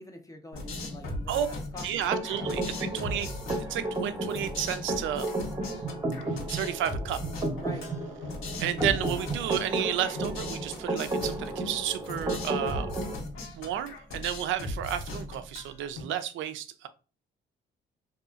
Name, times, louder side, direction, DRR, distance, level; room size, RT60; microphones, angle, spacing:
voice 1, 0.0-2.5 7.6-7.9, left 1 dB, 15° left, 0.5 m, -45 dB
sound 1, 0.5-16.0, left 2 dB, 85° left, 0.9 m, -38 dB
voice 2, 1.8-3.3 3.7-5.3 6.5-7.2 8.6-12.9 13.5-16.9, right 10 dB, 75° right, 0.4 m, -32 dB
sound 2, 2.1-13.2, right 2 dB, 20° right, 0.7 m, -33 dB
2.8 x 2.3 x 2.3 m
cardioid pair, 90°, 20 cm